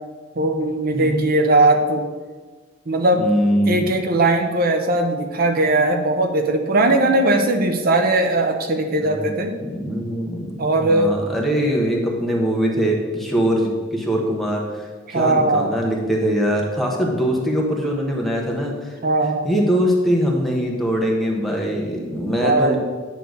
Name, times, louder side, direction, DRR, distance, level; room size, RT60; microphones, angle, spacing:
voice 1, 0.4-2.1 2.9-3.2 3.7-9.5 10.6-11.1 15.1-15.8 19.0-19.5 22.4-22.8, right 2 dB, 50° right, 5 dB, 0.8 m, -19 dB
voice 2, 3.2-3.9 6.9-7.1 9.0-9.3 9.6-18.9 19.2-22.8, equal, ahead, -2 dB, 1.2 m, -22 dB
9.3 x 3.3 x 6.4 m, 1.4 s
head